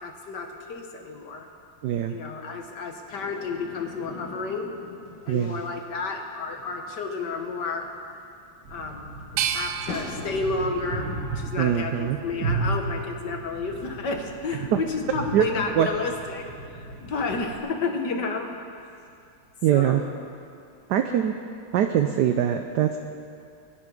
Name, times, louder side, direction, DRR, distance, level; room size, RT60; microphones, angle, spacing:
voice 1, 0.0-1.5 2.1-4.7 5.3-7.9 8.7-9.1 9.5-11.1 11.3-16.5 16.8-18.5 19.7-20.1, left 4 dB, 60° left, 4 dB, 1.7 m, -31 dB
voice 2, 1.8-2.1 5.3-5.6 11.6-12.2 14.7-14.8 15.3-15.4 15.8-15.9 19.6-20.0 20.9-21.3 21.7-23.0, right 10 dB, 70° right, 6 dB, 1.1 m, -22 dB
sound 1, 3.1-10.7, left 3 dB, 80° left, 2.2 m, -43 dB
sound 2, 8.6-17.6, right 3 dB, 45° right, 1.7 m, -34 dB
sound 3, 9.4-12.3 12.8-13.7, right 9 dB, 85° right, 1.4 m, -34 dB
22.0 x 9.9 x 5.3 m, 2.5 s
omnidirectional pair, 2.2 m